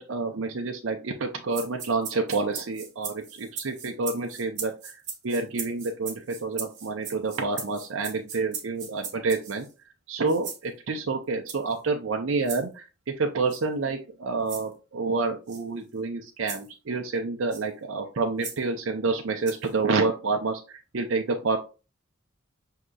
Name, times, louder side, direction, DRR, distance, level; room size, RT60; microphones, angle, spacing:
voice 1, 0.0-4.9 5.2-9.7 10.1-21.6, right 3 dB, 70° right, 3 dB, 0.6 m, -28 dB
sound 1, 1.5-9.7 10.3-10.6 11.5-11.8 12.5-12.6 13.5-13.6 14.5-14.7 15.5-15.6 16.5-16.7 17.5-17.7 18.4-18.6 19.5-19.7, right 6 dB, 55° right, 1.2 m, -38 dB
6.3 x 2.8 x 2.3 m, 0.31 s
head